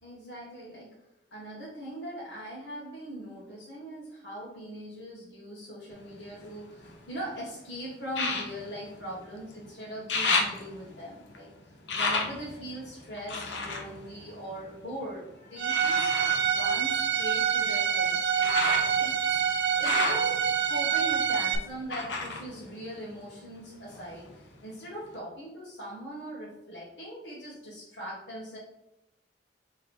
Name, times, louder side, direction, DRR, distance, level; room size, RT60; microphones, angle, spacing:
voice 1, 0.0-0.9 1.3-11.5 12.0-16.1 16.5-19.4 19.7-20.4 20.7-28.6, equal, 70° left, -9 dB, 1.3 m, -41 dB
sound 1, 5.9-7.3 8.1-9.6 9.9-15.0 15.7-23.5 23.8-24.7 25.1-25.2, left 3 dB, 90° left, 0.8 m, -34 dB
Bowed string instrument, 15.6-21.6, right 8 dB, 80° right, 0.5 m, -26 dB
3.6 x 3.0 x 4.3 m, 0.88 s
head